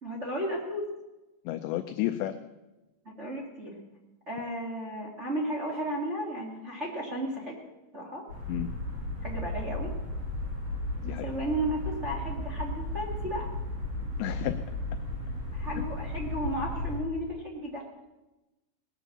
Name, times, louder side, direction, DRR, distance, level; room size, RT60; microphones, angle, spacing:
voice 1, 0.0-0.8 3.2-3.8 4.3-7.6 7.9-8.2 9.2-9.9 11.0-13.5 15.5-17.8, right 1 dB, 55° right, -2 dB, 0.7 m, -34 dB
voice 2, 1.5-2.4 8.5-8.7 11.0-11.3 14.2-14.6 15.8-15.9, left 14 dB, 80° left, 7 dB, 2.6 m, -31 dB
sound 1, 8.3-17.0, left 1 dB, 25° right, 4.4 m, -35 dB
19.5 x 9.0 x 7.2 m, 1.0 s
omnidirectional pair, 5.5 m